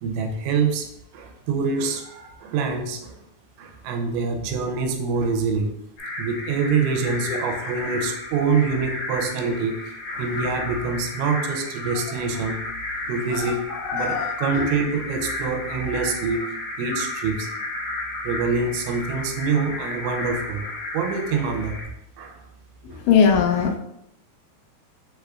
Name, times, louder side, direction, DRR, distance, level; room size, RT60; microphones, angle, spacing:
voice 1, 0.0-0.9 1.1-3.2 3.6-5.7 6.2-12.6 13.1-13.6 13.9-16.5 16.8-17.5 18.2-21.8 22.2-22.4 22.9-23.0, right 5 dB, 85° right, 5 dB, 2.9 m, -25 dB
sound 1, 6.0-21.8, left 2 dB, 60° left, 2.0 m, -33 dB
voice 2, 13.3-14.7 23.1-23.8, left 6 dB, 80° left, 2 dB, 2.6 m, -21 dB
7.3 x 2.9 x 2.3 m, 0.80 s
omnidirectional pair, 5.3 m